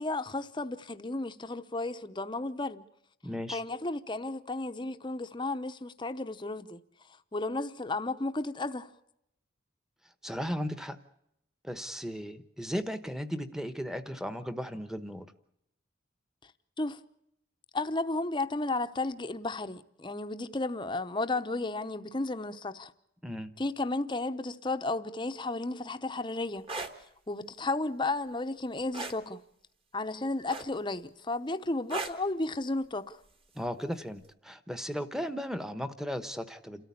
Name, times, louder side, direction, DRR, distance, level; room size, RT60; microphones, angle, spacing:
voice 1, 0.0-2.8 3.5-6.8 7.3-8.9 16.8-17.0 17.7-22.9 23.6-26.7 27.3-29.4 29.9-33.2, left 2 dB, 25° left, 0.8 m, -33 dB
voice 2, 3.2-3.6 10.2-11.0 11.6-15.3 23.2-23.5 33.5-36.8, equal, ahead, 1.0 m, -36 dB
sound 1, 26.6-26.9 28.9-29.2 30.5-30.9 31.9-32.2 33.7-33.8, right 3 dB, 25° right, 1.4 m, -36 dB
28.5 x 13.5 x 8.5 m
head